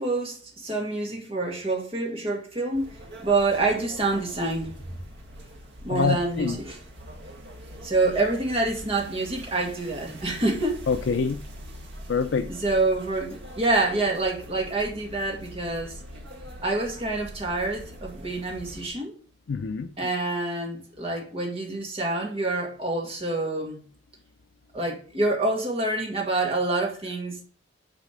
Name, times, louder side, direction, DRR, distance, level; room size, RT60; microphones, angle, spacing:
voice 1, 0.0-4.7 5.8-6.8 7.8-10.8 12.5-16.0 16.6-19.1 20.0-23.8 24.7-27.4, right 2 dB, 30° right, 2.0 m, -27 dB
sound 1, 2.7-18.9, equal, 70° right, 1.5 m, -43 dB
voice 2, 5.9-6.6 10.9-11.4 12.1-12.5 19.5-19.9, left 5 dB, 80° left, 0.4 m, -25 dB
7.5 x 4.1 x 5.1 m
head